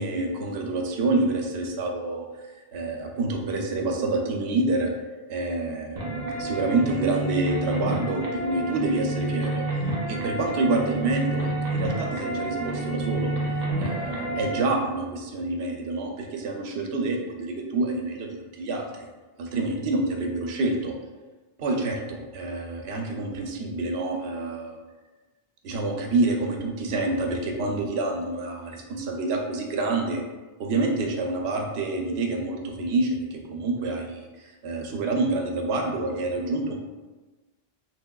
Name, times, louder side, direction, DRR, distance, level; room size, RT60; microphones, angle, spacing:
voice 1, 0.0-4.9 5.3-9.6 10.1-13.4 13.8-19.1 19.4-20.9 21.6-24.8 25.6-30.2 30.6-36.8, right 2 dB, 85° right, 2 dB, 0.8 m, -27 dB
sound 1, 6.0-14.6, right 2 dB, 50° right, 0.7 m, -29 dB
3.1 x 2.8 x 2.2 m, 1.2 s
omnidirectional pair, 1.0 m